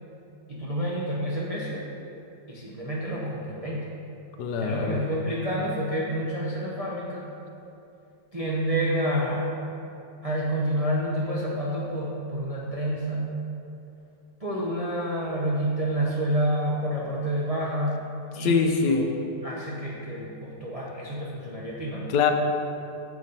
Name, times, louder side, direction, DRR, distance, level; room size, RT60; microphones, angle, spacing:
voice 1, 0.5-1.8 2.5-3.9 4.6-7.3 8.3-9.5 10.2-13.4 14.4-18.0 18.3-19.1 19.4-22.1, right 1 dB, 55° right, -6 dB, 0.4 m, -28 dB
voice 2, 4.4-5.0 18.4-19.0 22.1-22.3, left 5 dB, 85° left, 5 dB, 1.3 m, -23 dB
7.1 x 4.1 x 5.1 m, 2.7 s
omnidirectional pair, 1.9 m